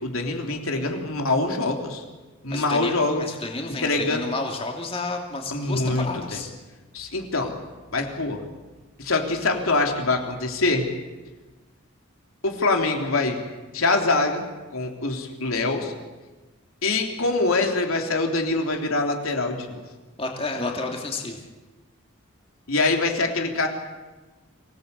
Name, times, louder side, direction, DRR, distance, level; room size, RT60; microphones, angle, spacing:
voice 1, 0.0-2.0 2.4-3.2 3.8-4.2 5.5-6.1 6.3-6.4 6.9-7.5 7.9-8.4 9.0-10.8 12.4-13.4 13.7-14.4 14.7-15.9 16.8-19.8 22.7-23.7, left 3 dB, 80° left, 2 dB, 3.4 m, -24 dB
voice 2, 2.5-6.5 20.2-21.4, left 3 dB, 25° left, 1 dB, 2.7 m, -31 dB
25.5 x 18.0 x 8.3 m, 1.2 s
head